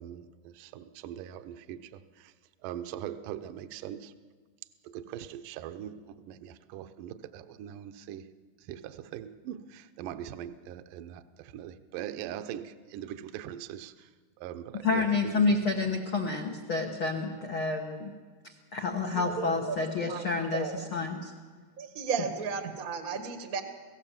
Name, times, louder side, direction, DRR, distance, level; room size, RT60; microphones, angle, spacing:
voice 1, 0.0-2.3 2.6-4.1 4.8-8.2 8.6-14.1 14.4-15.6, right 10 dB, 75° right, 2.0 m, -41 dB
voice 2, 14.8-18.1 18.7-21.3, left 4 dB, 80° left, 1.1 m, -29 dB
voice 3, 19.1-20.2 20.5-20.9 21.8-23.6, right 5 dB, 60° right, 0.9 m, -34 dB
29.0 x 16.5 x 7.4 m
omnidirectional pair, 4.8 m